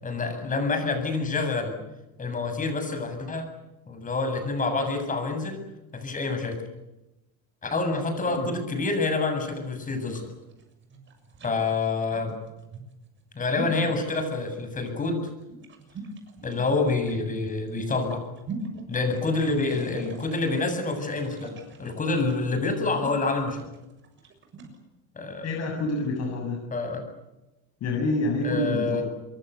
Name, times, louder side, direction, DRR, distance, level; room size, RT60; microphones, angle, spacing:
voice 1, 0.0-1.8 2.2-3.5 3.9-5.6 5.9-6.6 7.6-10.2 11.4-12.3 13.3-15.3 16.4-18.2 18.9-23.6 25.1-25.5 26.7-27.0 28.4-29.0, left 3 dB, 25° left, 6 dB, 7.9 m, -27 dB
sound 1, 10.0-24.8, right 2 dB, 35° right, 6.9 m, -43 dB
voice 2, 25.4-26.6 27.8-29.0, left 2 dB, 50° left, 1 dB, 7.5 m, -27 dB
26.0 x 23.0 x 8.4 m, 0.97 s
cardioid pair, 135°, 34 cm